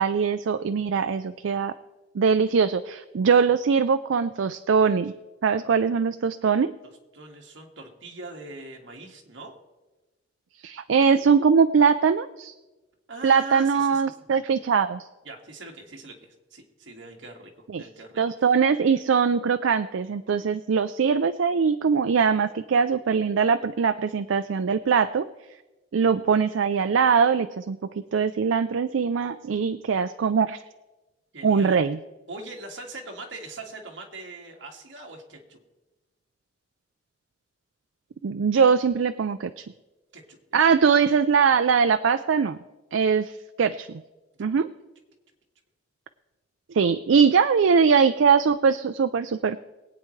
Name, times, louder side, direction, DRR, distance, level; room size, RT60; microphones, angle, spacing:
voice 1, 0.0-1.7 2.1-5.1 5.4-6.7 10.6-12.5 13.2-15.1 17.7-17.8 18.2-25.3 25.9-27.8 28.1-30.6 31.4-32.0 38.2-39.6 40.5-42.6 42.9-44.0 44.4-44.7 46.7-49.6, right 6 dB, 85° right, 11 dB, 0.4 m, -21 dB
voice 2, 7.1-9.6 13.1-14.0 15.2-18.5 31.3-31.8 32.3-35.6 40.1-40.6 44.4-44.5, right 2 dB, 70° right, 1 dB, 1.9 m, -41 dB
23.0 x 8.8 x 3.2 m, 1.1 s
head